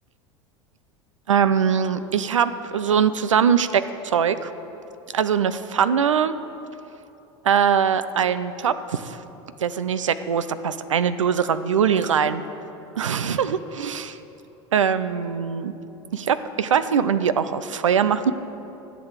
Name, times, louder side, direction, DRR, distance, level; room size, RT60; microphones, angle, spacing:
voice 1, 1.3-4.5 5.1-6.3 7.4-9.2 9.6-12.4 13.0-14.2 14.7-15.7 16.3-18.3, right 7 dB, 90° right, 13 dB, 0.5 m, -22 dB
12.0 x 8.2 x 7.3 m, 3.0 s
hypercardioid pair, 80°, 16 cm